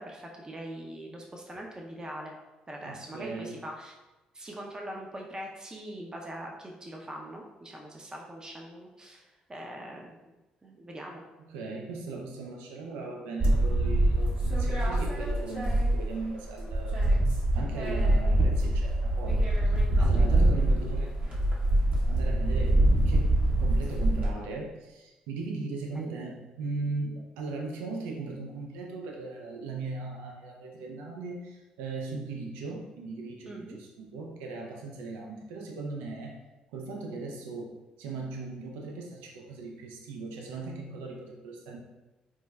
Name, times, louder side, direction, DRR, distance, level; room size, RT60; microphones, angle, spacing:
voice 1, 0.0-2.3 2.7-4.0 4.3-10.2 10.6-11.2 26.0-26.2 33.5-33.8, right 1 dB, 25° right, 0 dB, 0.5 m, -42 dB
voice 2, 2.8-3.6 11.4-17.0 17.6-21.3 22.1-36.4 36.7-37.7 38.0-41.8, right 3 dB, 80° right, 0 dB, 0.4 m, -38 dB
sound 1, 13.4-16.3 16.6-24.3, right 1 dB, 50° right, 0.9 m, -24 dB
4.4 x 2.1 x 2.2 m, 1.1 s
hypercardioid pair, 50°, 3 cm